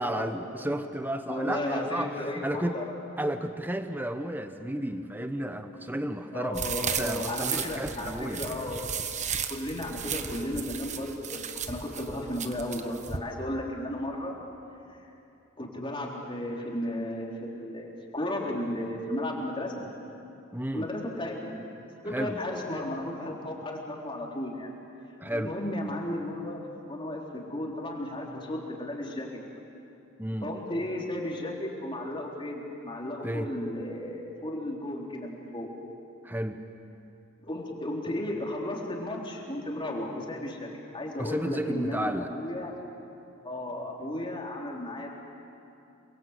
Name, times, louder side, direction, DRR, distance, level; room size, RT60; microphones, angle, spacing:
voice 1, 0.0-2.8 3.2-6.7 7.0-8.4 20.5-20.9 22.1-22.4 25.2-25.6 30.2-30.5 33.2-33.5 36.2-36.6 41.2-42.3, right 1 dB, 10° right, 8 dB, 0.9 m, -32 dB
voice 2, 1.3-2.8 6.3-8.9 9.5-14.3 14.9-15.0 15.6-19.8 20.7-21.5 22.0-24.7 25.3-29.3 30.4-35.7 37.4-42.7 43.4-45.2, left 1 dB, 25° left, -2 dB, 3.8 m, -34 dB
sound 1, 6.5-13.2, right 7 dB, 35° right, 1.2 m, -35 dB
29.5 x 22.0 x 8.3 m, 2.7 s
head